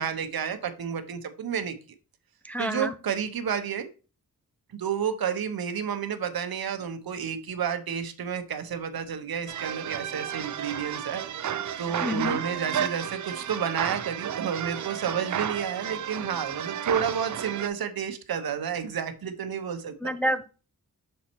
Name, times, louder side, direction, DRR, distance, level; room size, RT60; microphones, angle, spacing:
voice 1, 0.0-1.7 2.6-3.9 4.7-11.2 11.8-20.1, right 7 dB, 75° right, 9 dB, 0.9 m, -31 dB
voice 2, 2.4-2.9 12.0-12.4 20.0-20.5, equal, 5° left, 9 dB, 0.4 m, -28 dB
sound 1, 9.5-17.7, right 9 dB, 55° right, 0.5 m, -32 dB
6.5 x 4.3 x 4.4 m, 0.35 s
wide cardioid pair, 80°, 36 cm